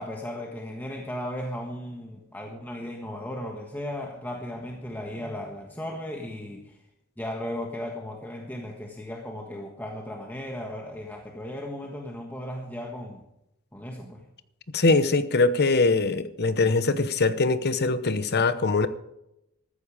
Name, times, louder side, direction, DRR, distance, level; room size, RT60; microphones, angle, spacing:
voice 1, 0.0-6.8 7.2-13.2 13.7-14.2, left 1 dB, 10° left, 0 dB, 1.4 m, -36 dB
voice 2, 14.7-18.9, left 3 dB, 45° left, 13 dB, 0.9 m, -22 dB
14.0 x 14.0 x 4.9 m, 0.85 s
head